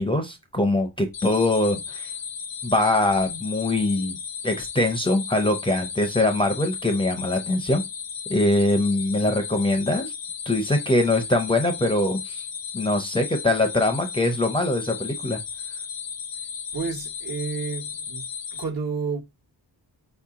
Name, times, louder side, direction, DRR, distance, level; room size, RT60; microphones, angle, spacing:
voice 1, 0.0-2.1 2.6-4.2 4.4-7.8 8.3-10.1 10.5-12.4 12.7-15.4, left 1 dB, 10° left, 0.6 m, -23 dB
sound 1, 1.1-18.6, left 7 dB, 90° left, 0.8 m, -35 dB
voice 2, 16.7-18.3 18.5-19.2, right 5 dB, 55° right, 1.3 m, -30 dB
4.4 x 2.8 x 3.6 m
wide cardioid pair, 125°, 43 cm